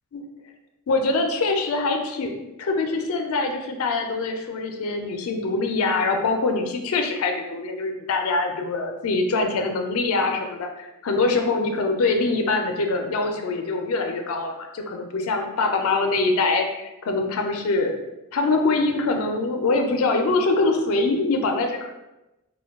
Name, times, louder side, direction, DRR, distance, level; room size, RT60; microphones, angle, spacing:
voice 1, 0.9-2.3 2.6-18.0 18.3-21.9, left 3 dB, 75° left, 4 dB, 0.4 m, -24 dB
2.2 x 2.2 x 3.4 m, 0.97 s
head